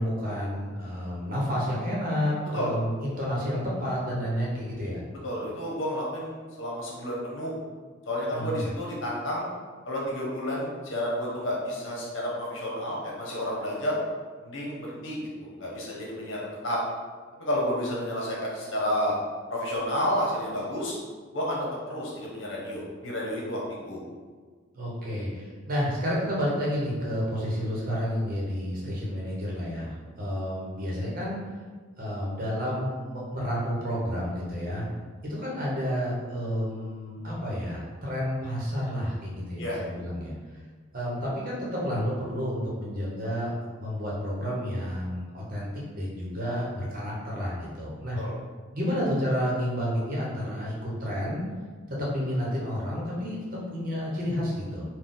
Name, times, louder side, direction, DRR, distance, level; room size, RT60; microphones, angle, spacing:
voice 1, 0.0-5.0 8.3-8.6 24.7-31.4 32.0-34.8 35.2-40.3 40.9-43.5 43.8-48.2 48.7-51.4 52.0-54.8, equal, 45° right, -5 dB, 1.0 m, -30 dB
voice 2, 5.2-7.5 8.1-9.5 9.8-14.0 14.4-16.8 17.4-19.2 19.5-20.9 21.3-24.0 39.6-39.8 48.1-48.3, equal, 70° left, -4 dB, 1.0 m, -31 dB
4.1 x 2.3 x 3.8 m, 1.5 s
head